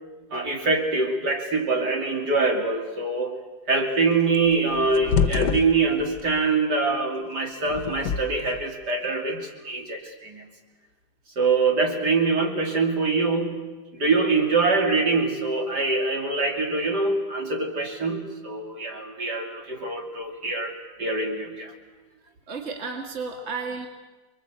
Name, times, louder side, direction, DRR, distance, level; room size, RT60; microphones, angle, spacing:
voice 1, 0.3-3.4 3.7-10.5 11.4-13.6 13.9-21.7, right 3 dB, 60° right, 2 dB, 3.5 m, -24 dB
sound 1, 4.3-6.3 7.6-8.6, left 6 dB, 70° left, 1.6 m, -26 dB
voice 2, 22.5-23.9, right 4 dB, 35° right, 3 dB, 2.4 m, -32 dB
28.5 x 22.0 x 8.2 m, 1.3 s
omnidirectional pair, 2.0 m